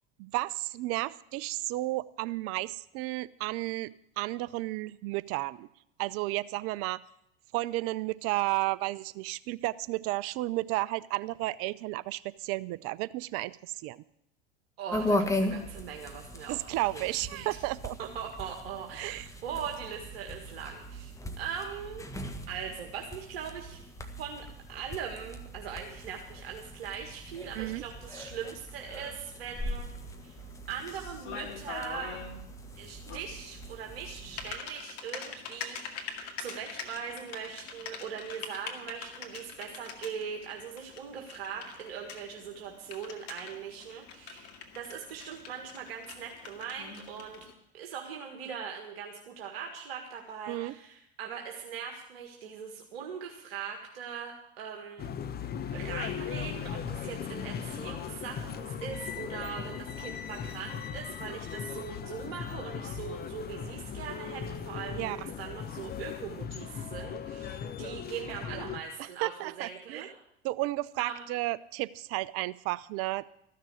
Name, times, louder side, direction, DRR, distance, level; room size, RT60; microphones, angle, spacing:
voice 1, 0.2-5.7 6.0-7.0 7.5-13.6 13.8-14.0 16.5-18.0 19.0-19.2 27.5-27.8 50.5-50.7 65.0-65.2 68.6-68.7 69.0-70.1 70.4-73.3, right 19 dB, 45° right, 19 dB, 0.5 m, -33 dB
voice 2, 14.8-16.6 16.9-17.0 17.3-17.6 18.0-21.1 21.4-22.0 22.5-23.9 24.2-29.9 30.2-32.2 32.8-55.1 55.7-70.1 71.0-71.2, right 7 dB, 70° right, 2 dB, 1.8 m, -41 dB
sound 1, 14.9-34.6, left 1 dB, 10° left, 1.5 m, -39 dB
Typing, 29.5-47.5, left 6 dB, 55° left, 2.1 m, -45 dB
sound 2, 55.0-68.8, left 7 dB, 30° left, 0.9 m, -38 dB
14.0 x 6.7 x 9.5 m, 0.79 s
hypercardioid pair, 85°, 31 cm